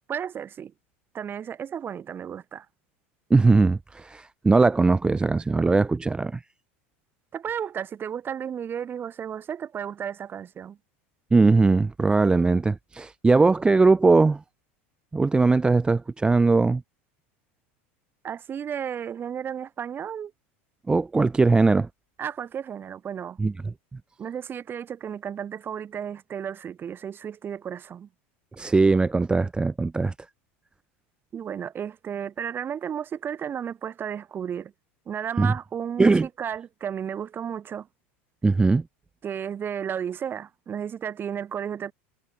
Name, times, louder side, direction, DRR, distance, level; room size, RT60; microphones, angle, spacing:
voice 1, 0.1-0.7 1.1-2.7 7.3-10.8 18.2-20.3 22.2-23.4 24.2-28.1 31.3-34.7 35.1-37.9 39.2-41.9, right 8 dB, 30° right, 4.3 m, -33 dB
voice 2, 3.3-6.4 11.3-14.4 15.1-16.8 20.9-21.9 23.4-23.7 28.6-30.1 35.4-35.5 36.0-36.3 38.4-38.8, right 3 dB, 15° right, 0.6 m, -20 dB
hypercardioid pair, 100°, 7 cm